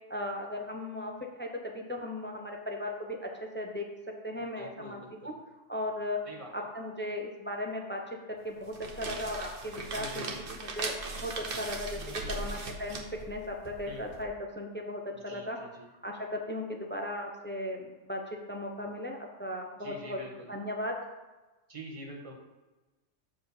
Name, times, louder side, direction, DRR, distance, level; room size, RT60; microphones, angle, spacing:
voice 1, 0.1-1.1 1.4-3.9 4.2-5.3 5.7-6.2 6.5-8.0 8.4-10.3 10.6-12.0 12.3-13.0 13.3-15.6 16.0-18.2 18.5-20.2 20.5-21.0, left 1 dB, 10° left, 1 dB, 0.7 m, -37 dB
voice 2, 4.4-5.4 6.2-6.5 9.9-10.4 11.9-12.5 13.8-14.1 15.1-15.9 19.8-20.5 21.7-22.3, equal, 30° right, 0 dB, 1.4 m, -46 dB
sound 1, 8.6-14.2, right 3 dB, 50° right, 1.1 m, -39 dB
7.7 x 4.4 x 6.8 m, 1.2 s
omnidirectional pair, 1.3 m